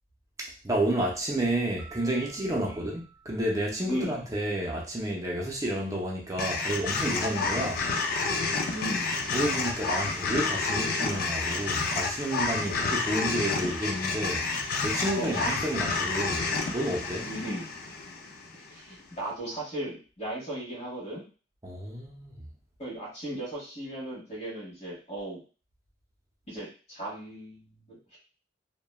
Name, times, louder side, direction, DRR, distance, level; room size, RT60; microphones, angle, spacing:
voice 1, 0.4-7.8 9.3-14.4 14.8-17.3 21.6-22.4, right 1 dB, 20° right, -2 dB, 0.6 m, -30 dB
sound 1, 1.8-4.5, right 7 dB, 5° left, 1.1 m, -55 dB
voice 2, 3.9-4.3 7.5-7.7 8.7-9.2 12.7-12.8 15.1-15.5 17.2-17.7 18.5-21.2 22.8-25.4 26.5-28.2, right 1 dB, 35° left, -7 dB, 1.3 m, -36 dB
sound 2, 6.4-18.7, left 4 dB, 55° left, 0.4 m, -30 dB
3.0 x 2.2 x 2.2 m, 0.36 s
head